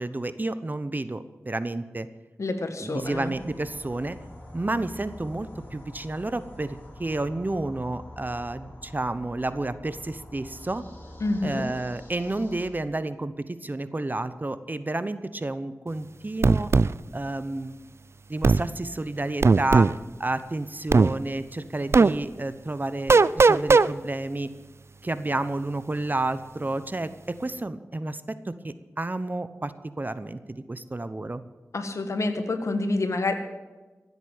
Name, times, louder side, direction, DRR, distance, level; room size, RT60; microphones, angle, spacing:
voice 1, 0.0-2.1 2.8-4.2 4.5-10.8 11.4-16.7 17.1-17.7 18.3-24.5 25.0-31.4, right 2 dB, 35° right, 13 dB, 0.9 m, -31 dB
voice 2, 2.4-3.3 11.2-11.6 31.7-33.3, left 2 dB, 75° left, 7 dB, 1.7 m, -27 dB
sound 1, 3.0-12.7, left 1 dB, 35° left, 5.7 m, -45 dB
sound 2, 16.4-16.9 18.4-18.6 19.4-19.9 20.9-21.1 21.9-22.1 23.1-23.9, right 4 dB, 60° right, 0.4 m, -17 dB
15.0 x 8.2 x 8.9 m, 1.2 s
cardioid pair, 45°, 5 cm